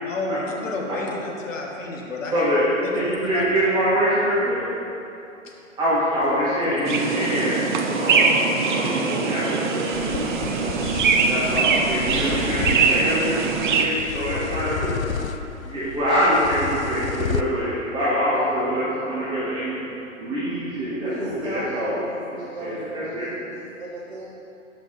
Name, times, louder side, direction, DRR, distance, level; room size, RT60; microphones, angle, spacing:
voice 1, 0.0-2.5 2.8-3.4 6.6-6.8, left 2 dB, 70° left, 0 dB, 1.4 m, -30 dB
voice 2, 2.3-4.7 5.8-15.0 15.6-19.8 20.2-22.0 22.6-23.3, equal, 10° right, -11 dB, 1.7 m, -25 dB
sound 1, 6.9-13.9, right 5 dB, 40° right, 0.5 m, -22 dB
sound 2, 9.9-17.4, left 7 dB, 85° left, 0.5 m, -32 dB
voice 3, 21.0-24.3, right 1 dB, 55° right, -7 dB, 1.3 m, -35 dB
11.0 x 5.9 x 2.6 m, 2.9 s
hypercardioid pair, 135°, 40 cm